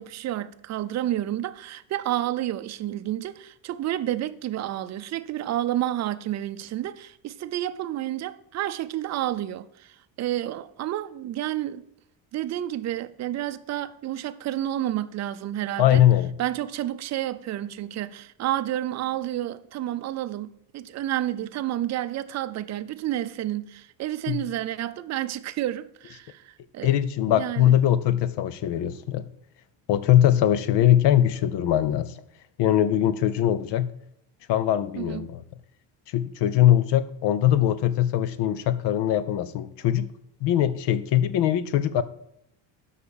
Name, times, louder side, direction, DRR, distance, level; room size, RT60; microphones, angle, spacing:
voice 1, 0.0-11.8 12.3-16.1 16.4-27.0 27.3-27.7 35.0-35.3, right 13 dB, 40° right, 0.5 m, -30 dB
voice 2, 15.8-16.3 24.3-24.4 26.8-29.2 29.9-32.1 32.6-33.9 34.5-35.4 36.1-40.1 40.4-42.0, left 11 dB, 65° left, 0.7 m, -21 dB
8.3 x 5.7 x 7.0 m
cardioid pair, 150°, 45 cm